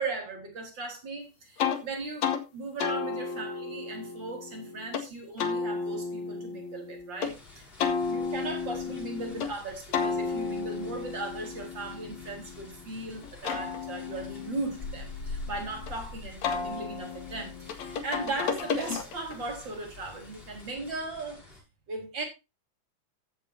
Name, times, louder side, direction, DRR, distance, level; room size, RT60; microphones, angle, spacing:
voice 1, 0.0-21.4 21.9-22.2, right 3 dB, 35° right, 4.8 m, -37 dB
sound 1, 1.6-1.8 2.2-2.4 2.8-5.1 5.4-7.3 7.8-9.5 9.9-12.8 13.2-15.9 16.4-19.4, left 5 dB, 70° left, 3.0 m, -33 dB
sound 2, 7.2-21.6, left 3 dB, 35° left, 7.4 m, -46 dB
15.0 x 10.5 x 2.8 m
omnidirectional pair, 3.4 m